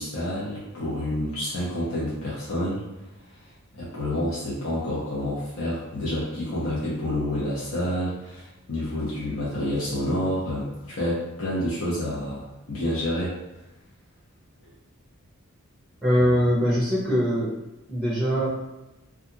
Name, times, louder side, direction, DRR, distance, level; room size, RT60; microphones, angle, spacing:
voice 1, 0.0-2.8 3.7-13.4 16.2-16.4, left 1 dB, 80° left, -9 dB, 0.8 m, -28 dB
voice 2, 16.0-17.6 17.9-18.5, equal, 5° left, -8 dB, 0.6 m, -22 dB
2.4 x 2.3 x 2.7 m, 0.98 s
head